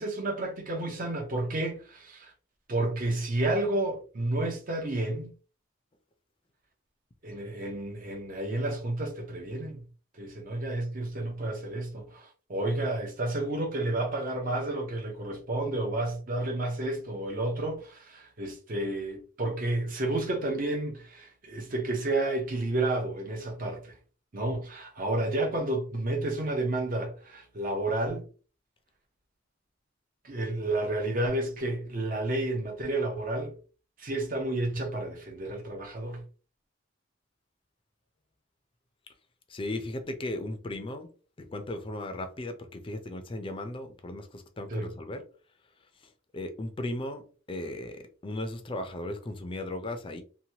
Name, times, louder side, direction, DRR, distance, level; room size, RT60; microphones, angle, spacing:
voice 1, 0.0-2.3 2.7-5.3 7.2-9.8 10.1-24.0 24.3-28.3 30.2-33.5 34.0-36.2 44.7-44.9, right 2 dB, 45° right, 0.7 m, -31 dB
voice 2, 39.5-41.1 41.4-45.2 46.3-47.2 47.5-50.2, left 1 dB, 25° left, 0.5 m, -36 dB
2.9 x 2.2 x 2.8 m
head